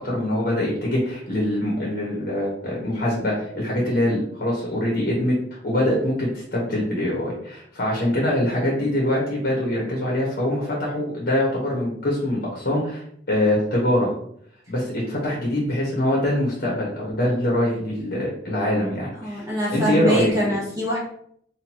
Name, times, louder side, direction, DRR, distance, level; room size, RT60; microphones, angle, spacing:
voice 1, 0.0-5.4 5.6-13.0 13.3-14.1 14.7-19.4 19.7-20.3, left 1 dB, 60° left, -3 dB, 1.1 m, -23 dB
voice 2, 19.2-21.0, equal, 20° right, -7 dB, 1.0 m, -24 dB
4.3 x 2.6 x 2.9 m, 0.67 s
head